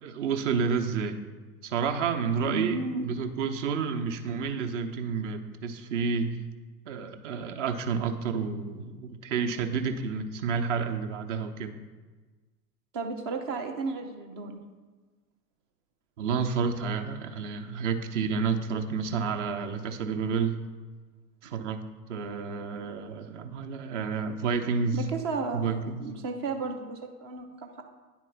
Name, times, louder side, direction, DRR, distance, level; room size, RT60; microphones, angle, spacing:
voice 1, 0.0-1.2 1.6-6.4 6.9-11.7 16.2-20.6 21.4-21.8 22.1-25.0 25.5-26.0, right 5 dB, 50° right, 6 dB, 0.9 m, -30 dB
voice 2, 2.4-3.1 12.9-14.7 21.4-21.5 24.9-27.8, right 3 dB, 20° right, 5 dB, 0.3 m, -33 dB
9.5 x 4.5 x 5.6 m, 1.3 s
figure-of-eight pair, 95°, 48 cm